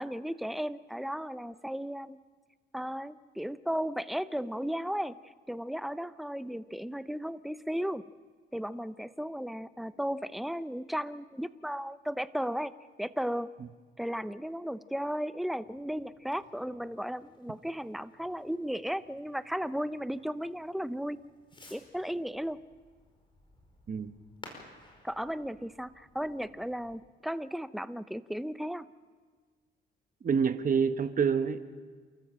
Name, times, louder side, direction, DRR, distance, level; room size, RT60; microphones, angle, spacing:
voice 1, 0.0-2.2 2.7-8.1 8.5-12.7 13.0-13.5 14.0-21.2 21.7-22.6 25.0-28.9, equal, ahead, 14 dB, 0.7 m, -35 dB
Fireworks, 15.6-27.0, left 2 dB, 25° left, 5.0 m, -57 dB
voice 2, 30.2-31.6, right 6 dB, 45° right, 10 dB, 1.2 m, -27 dB
28.5 x 13.5 x 7.6 m, 1.5 s
cardioid pair, 90°, 20 cm